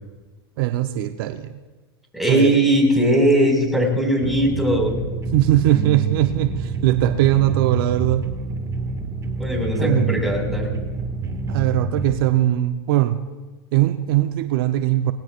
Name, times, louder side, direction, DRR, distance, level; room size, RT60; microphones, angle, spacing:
voice 1, 0.6-1.5 2.3-2.5 5.3-8.3 9.8-10.1 11.5-13.2 13.7-15.1, right 14 dB, 65° right, 9 dB, 0.8 m, -20 dB
voice 2, 2.1-5.0 9.4-10.7, right 1 dB, ahead, 0 dB, 5.3 m, -19 dB
sound 1, 4.2-12.2, right 4 dB, 25° right, 1.9 m, -27 dB
29.0 x 19.5 x 2.5 m, 1.2 s
hypercardioid pair, 100°, 13 cm